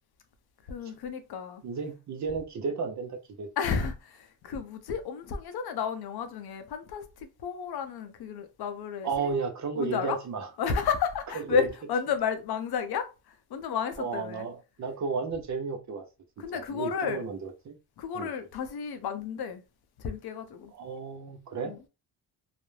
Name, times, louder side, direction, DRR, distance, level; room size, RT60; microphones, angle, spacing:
voice 1, 0.7-1.6 3.6-9.3 9.7-10.2 10.6-14.5 16.4-17.3 18.0-19.6 20.0-20.7 21.6-21.9, left 6 dB, 65° left, 0.6 m, -32 dB
voice 2, 1.6-3.5 9.0-10.5 11.3-11.7 14.0-16.0 16.5-17.8 18.1-18.3 20.8-21.7, right 5 dB, 45° right, 0.6 m, -33 dB
2.4 x 2.0 x 3.1 m
cardioid pair, 105°, 42 cm